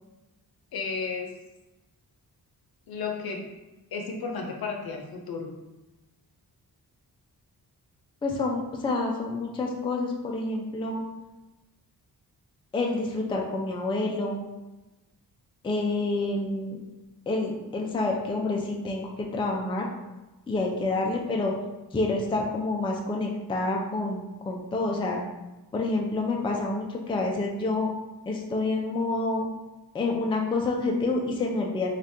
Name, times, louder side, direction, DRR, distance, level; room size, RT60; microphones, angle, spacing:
voice 1, 0.7-1.3 2.9-3.5 3.9-5.5, left 4 dB, 65° left, 2 dB, 0.7 m, -33 dB
voice 2, 8.2-11.0 12.7-14.4 15.6-16.8 17.3-19.9 20.5-21.5 21.9-25.2 25.7-27.9 28.3-29.5 29.9-32.0, left 2 dB, 15° left, 0 dB, 0.3 m, -28 dB
2.7 x 2.4 x 3.4 m, 1.1 s
wide cardioid pair, 110°, 39 cm